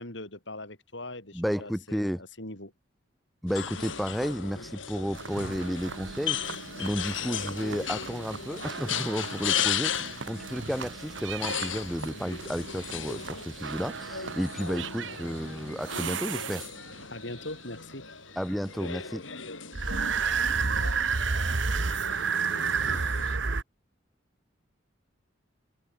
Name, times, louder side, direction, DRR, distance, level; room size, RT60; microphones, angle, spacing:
voice 1, 0.0-2.7 17.1-18.1, left 1 dB, 65° left, 7.1 m, -41 dB
voice 2, 1.3-2.2 3.4-6.4 6.8-16.7 18.4-19.2, equal, ahead, 3.9 m, -32 dB
sound 1, 3.5-23.4, left 8 dB, 85° left, 8.0 m, -36 dB
sound 2, 5.1-17.0 19.7-23.6, right 5 dB, 70° right, 1.3 m, -33 dB
head